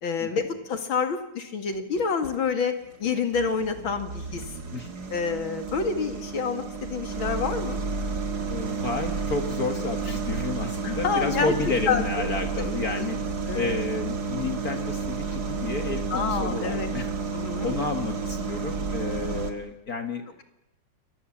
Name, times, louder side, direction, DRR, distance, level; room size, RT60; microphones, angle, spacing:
voice 1, 0.0-2.7 3.0-4.5 5.1-7.8 10.8-11.5 11.9-12.3 12.9-13.0 13.5-13.7 16.1-16.9 17.3-17.8, left 5 dB, 85° left, 7 dB, 2.9 m, -28 dB
sound 1, 1.7-2.4 2.9-19.5, right 4 dB, 50° right, 2.5 m, -31 dB
voice 2, 8.5-13.2 13.5-17.1 17.6-20.2, left 3 dB, 50° left, 6 dB, 2.1 m, -31 dB
27.5 x 22.5 x 7.3 m, 0.85 s
omnidirectional pair, 2.1 m